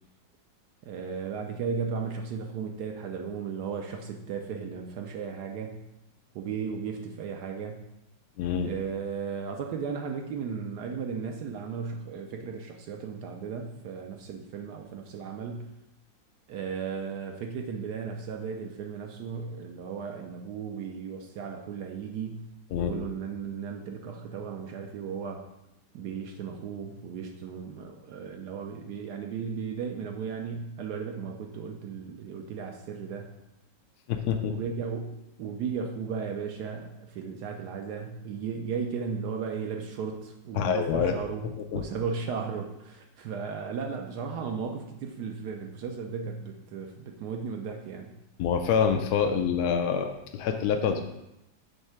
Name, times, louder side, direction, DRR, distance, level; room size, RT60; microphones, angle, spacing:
voice 1, 0.8-5.8 6.3-7.8 8.6-15.7 16.5-22.5 22.8-25.4 25.9-33.3 34.4-41.5 41.7-48.1, right 6 dB, 70° right, 4 dB, 1.1 m, -35 dB
voice 2, 8.4-8.7 22.7-22.9 34.1-34.5 40.6-41.1 41.7-41.8 48.4-51.0, left 7 dB, 75° left, 4 dB, 0.9 m, -26 dB
5.5 x 3.6 x 5.9 m, 0.88 s
omnidirectional pair, 2.1 m